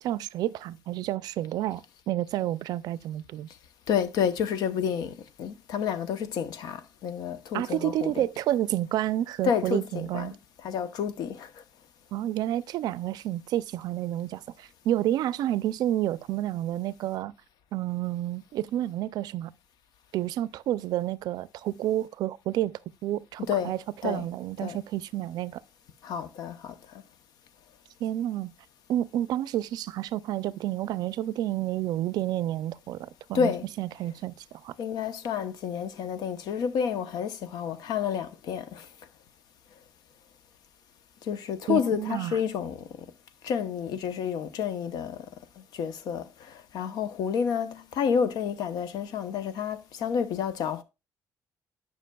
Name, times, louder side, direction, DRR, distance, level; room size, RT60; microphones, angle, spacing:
voice 1, 0.0-3.5 7.5-10.3 12.1-17.3 17.7-19.5 20.1-25.6 28.0-28.5 28.9-33.5 33.8-34.7 41.7-42.4, right 13 dB, 85° right, 0.4 m, -30 dB
voice 2, 3.9-8.3 9.4-11.6 23.5-23.8 24.0-24.3 24.6-24.8 26.0-26.7 33.3-33.7 34.8-38.9 41.2-43.1 43.4-45.3 45.6-50.8, left 7 dB, 85° left, 0.7 m, -30 dB
10.0 x 5.8 x 2.3 m
cardioid pair, 140°, 7 cm